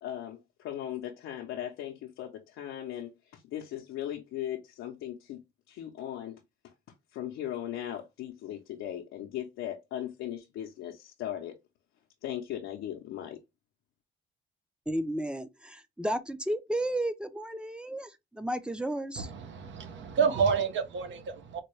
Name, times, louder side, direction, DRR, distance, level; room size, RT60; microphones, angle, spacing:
voice 1, 0.0-5.4 5.7-6.4 7.1-11.6 12.2-13.4, left 11 dB, 90° left, 0.6 m, -38 dB
voice 2, 14.9-19.3, right 1 dB, 5° right, 0.5 m, -33 dB
voice 3, 19.2-21.6, right 6 dB, 70° right, 0.9 m, -29 dB
4.3 x 2.2 x 3.1 m
cardioid pair, 90°, 20 cm